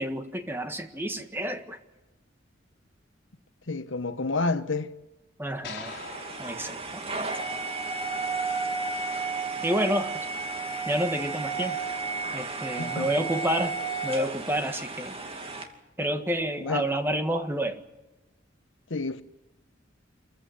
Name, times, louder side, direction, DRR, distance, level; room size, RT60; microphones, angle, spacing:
voice 1, 0.0-1.8 5.4-5.9 6.4-7.1 9.6-10.2 10.9-11.8 12.3-15.1 16.0-17.8, equal, 10° right, 1.6 m, -29 dB
voice 2, 3.7-4.9 12.8-13.1 16.6-16.9 18.9-19.2, left 3 dB, 70° left, 1.2 m, -29 dB
sound 1, 5.6-8.0, left 4 dB, 55° left, 4.3 m, -44 dB
sound 2, 5.9-15.6, right 4 dB, 30° right, 2.5 m, -33 dB
27.0 x 15.0 x 9.5 m
head